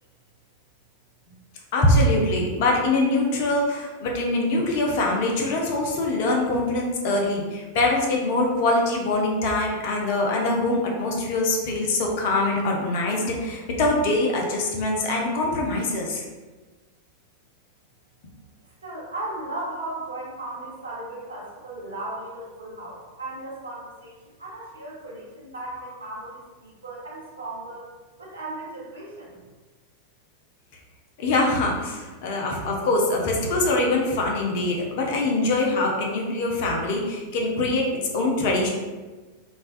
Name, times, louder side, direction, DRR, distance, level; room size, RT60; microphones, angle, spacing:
voice 1, 1.7-16.2 31.2-38.7, left 2 dB, 50° left, 0 dB, 0.5 m, -23 dB
voice 2, 18.8-27.8 28.2-29.3, right 2 dB, 75° right, -5 dB, 0.7 m, -36 dB
2.4 x 2.2 x 2.3 m, 1.3 s
figure-of-eight pair, 90°, 0 cm